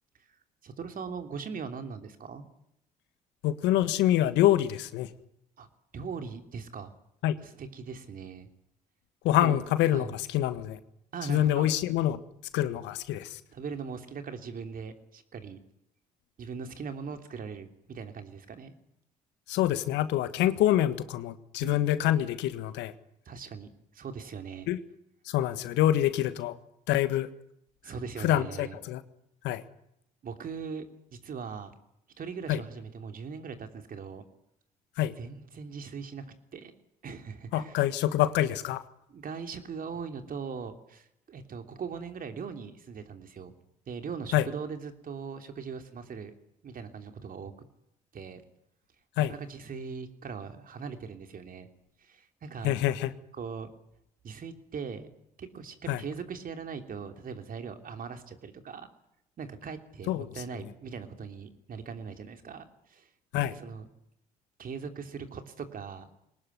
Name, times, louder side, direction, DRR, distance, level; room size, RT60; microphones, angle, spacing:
voice 1, 0.6-2.4 5.6-5.7 5.9-6.9 7.4-8.5 9.4-9.6 9.9-10.1 11.1-11.7 13.5-15.6 16.4-18.7 21.6-22.0 23.2-24.7 27.8-28.8 30.2-30.9 31.1-31.7 32.2-34.2 35.2-36.7 37.0-37.8 39.1-43.5 43.9-46.3 46.6-47.5 48.1-48.4 49.2-51.7 52.0-52.7 53.3-53.7 54.2-55.1 55.4-58.9 59.4-63.1 63.3-63.9 64.6-66.1, right 5 dB, 50° right, 7 dB, 3.2 m, -40 dB
voice 2, 3.4-5.1 7.2-7.4 9.2-10.8 11.3-12.2 12.5-13.4 19.5-22.9 24.7-24.8 25.3-26.6 26.9-27.3 28.2-29.0 29.4-29.6 32.5-32.6 35.0-35.1 37.5-38.8 44.3-44.5 49.2-49.3 52.6-53.1 55.9-56.0 60.1-60.3 63.3-63.5, left 13 dB, 75° left, 12 dB, 1.6 m, -26 dB
22.5 x 19.5 x 9.5 m, 0.79 s
hypercardioid pair, 60°, 19 cm